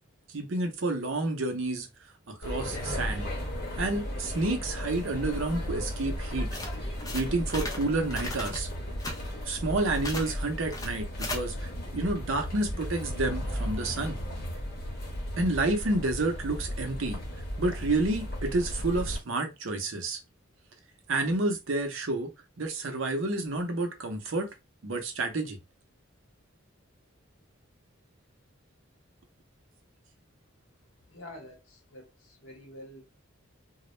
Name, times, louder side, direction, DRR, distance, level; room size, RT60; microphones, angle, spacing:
voice 1, 0.3-1.9 2.3-3.3 3.8-6.5 7.1-8.7 9.5-14.2 15.4-17.2 17.6-20.2 21.1-22.3 22.6-24.5 24.8-25.6, right 2 dB, 70° right, 0.7 m, -29 dB
sound 1, 2.4-19.2, equal, 45° left, 0.8 m, -35 dB
sound 2, 6.5-7.8 8.1-8.6 8.9-9.3 10.0-10.3 10.7-11.4, left 1 dB, 15° left, 0.5 m, -36 dB
voice 2, 31.1-33.0, left 1 dB, 75° left, 0.9 m, -47 dB
2.3 x 2.0 x 3.0 m
head